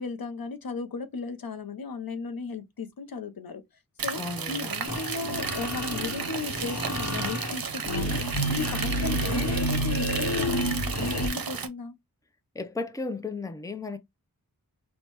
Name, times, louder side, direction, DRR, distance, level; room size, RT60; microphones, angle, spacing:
voice 1, 0.0-3.6 4.0-4.2 4.5-11.9, left 4 dB, 80° left, 0.7 m, -35 dB
sound 1, 4.0-11.7, right 6 dB, 75° right, 0.6 m, -34 dB
voice 2, 4.2-4.6 12.6-14.0, left 3 dB, 10° left, 0.5 m, -34 dB
sound 2, 4.9-11.3, equal, 45° left, 1.0 m, -30 dB
4.4 x 2.2 x 2.9 m
wide cardioid pair, 65°, 35 cm